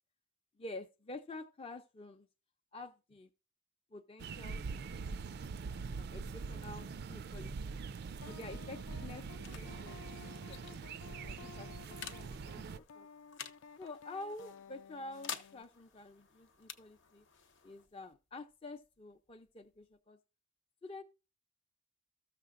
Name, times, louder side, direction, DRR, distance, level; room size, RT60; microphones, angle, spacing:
voice 1, 0.6-2.3 2.7-3.3 3.9-5.2 5.9-7.8 8.2-9.2 9.6-10.7 11.2-13.1 13.8-17.3 17.6-20.2 20.8-21.0, left 2 dB, 30° left, 0.5 m, -49 dB
sound 1, 4.2-12.8, right 4 dB, 55° right, 0.4 m, -43 dB
sound 2, 8.2-15.6, left 6 dB, 85° left, 0.3 m, -55 dB
sound 3, 8.8-20.0, left 7 dB, 65° left, 0.8 m, -52 dB
14.0 x 6.6 x 2.5 m
head